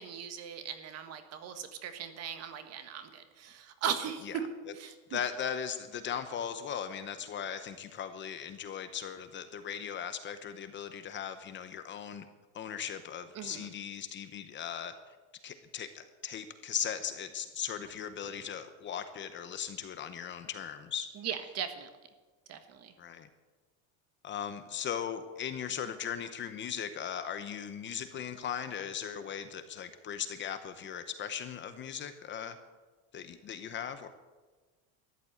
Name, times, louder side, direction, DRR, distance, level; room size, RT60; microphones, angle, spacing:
voice 1, 0.0-4.5 4.7-5.2 13.3-13.7 21.2-21.9 22.5-22.9, right 8 dB, 40° right, 9 dB, 1.5 m, -38 dB
voice 2, 5.1-12.3 12.5-14.9 15.4-21.1 23.0-23.3 24.2-32.6 33.1-34.1, left 8 dB, 30° left, 10 dB, 0.8 m, -38 dB
13.5 x 11.0 x 8.5 m, 1.3 s
cardioid pair, 165°, 40 cm